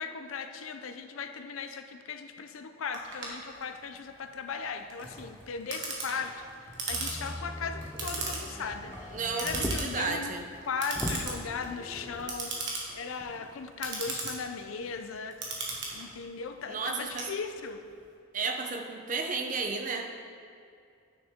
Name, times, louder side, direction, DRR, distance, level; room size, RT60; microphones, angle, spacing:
voice 1, 0.0-10.3 10.7-15.4 15.9-17.8, left 5 dB, 75° left, 7 dB, 0.5 m, -38 dB
Clock, 2.9-17.9, right 3 dB, 55° right, 1.4 m, -38 dB
Motor vehicle (road), 6.9-10.0 10.5-10.6 10.9-12.4 13.2-13.3, left 1 dB, 10° left, 0.6 m, -39 dB
voice 2, 9.1-10.4 16.7-17.3 18.3-20.1, right 4 dB, 35° right, 4 dB, 0.6 m, -33 dB
9.4 x 6.5 x 3.6 m, 2.4 s
head